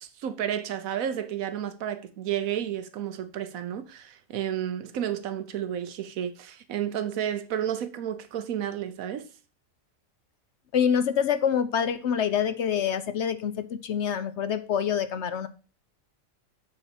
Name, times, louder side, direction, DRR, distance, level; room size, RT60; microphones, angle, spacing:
voice 1, 0.0-9.3, right 10 dB, 85° right, 1.3 m, -31 dB
voice 2, 10.7-15.5, left 8 dB, 65° left, 0.8 m, -26 dB
8.1 x 4.1 x 7.0 m
omnidirectional pair, 1.4 m